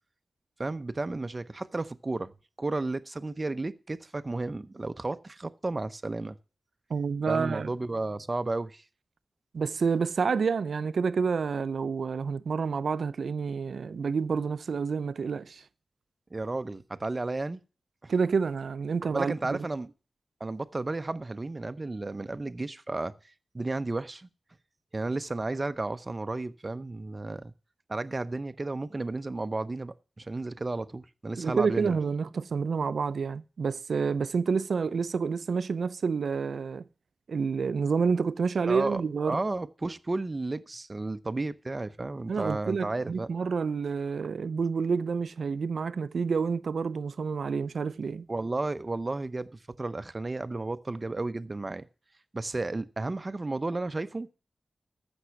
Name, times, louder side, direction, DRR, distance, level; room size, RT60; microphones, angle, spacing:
voice 1, 0.6-2.3 2.6-6.4 7.3-8.8 16.3-17.6 18.0-18.1 19.1-19.9 20.4-23.1 23.5-24.3 24.9-27.5 27.9-32.0 38.7-43.3 48.3-51.8 52.3-54.3, right 2 dB, 30° right, 0.7 m, -33 dB
voice 2, 6.9-7.7 9.5-15.6 18.1-19.7 31.4-36.9 37.3-39.4 42.3-48.3, right 5 dB, 85° right, 0.6 m, -29 dB
14.5 x 6.3 x 5.8 m
wide cardioid pair, 120°, 0 cm